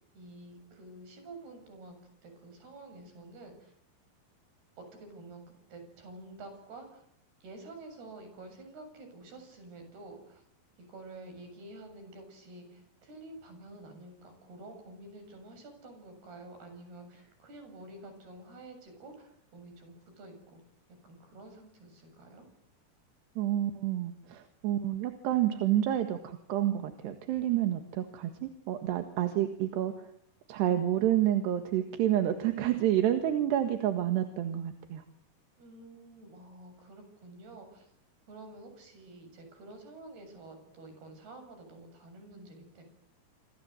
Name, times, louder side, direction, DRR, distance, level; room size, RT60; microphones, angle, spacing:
voice 1, 0.1-3.7 4.8-5.4 5.7-7.1 7.4-10.4 10.8-20.6 21.0-22.5 35.6-37.9 38.3-42.8, right 2 dB, 70° right, 7 dB, 9.4 m, -49 dB
voice 2, 23.4-30.1 30.5-35.0, right 12 dB, 85° right, 7 dB, 3.8 m, -29 dB
28.0 x 25.5 x 8.0 m, 0.70 s
omnidirectional pair, 4.8 m